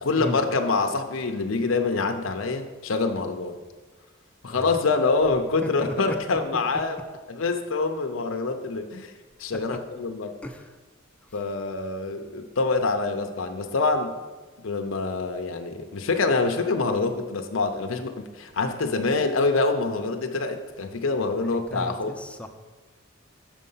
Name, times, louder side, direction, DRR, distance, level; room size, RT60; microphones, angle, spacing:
voice 1, 0.0-3.6 4.4-7.0 7.3-9.1 9.4-10.4 11.3-14.1 14.6-22.1, left 3 dB, 75° left, 5 dB, 0.6 m, -25 dB
voice 2, 4.5-4.8 5.6-5.9 9.5-9.6 10.4-10.8 11.2-11.4 21.4-22.5, equal, 5° left, 5 dB, 0.5 m, -36 dB
7.0 x 5.4 x 5.6 m, 1.3 s
head